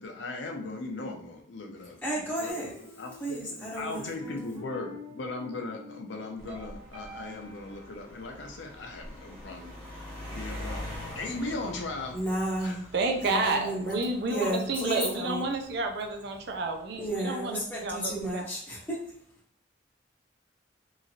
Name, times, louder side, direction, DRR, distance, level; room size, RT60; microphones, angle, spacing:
voice 1, 0.0-2.6 3.0-3.4 3.7-12.2 12.6-12.9, left 2 dB, 70° left, 2 dB, 0.5 m, -38 dB
voice 2, 2.0-2.7 3.2-4.1 12.1-12.8 13.2-14.0 14.3-15.4 17.0-19.1, right 1 dB, 10° left, -7 dB, 0.6 m, -32 dB
sound 1, 2.5-7.8, left 1 dB, 75° right, 1.1 m, -47 dB
sound 2, 6.4-17.1 17.9-18.3, left 1 dB, 40° right, 1.1 m, -44 dB
voice 3, 12.9-18.5, right 2 dB, 55° right, 4 dB, 0.4 m, -30 dB
2.9 x 2.5 x 2.6 m, 0.63 s
head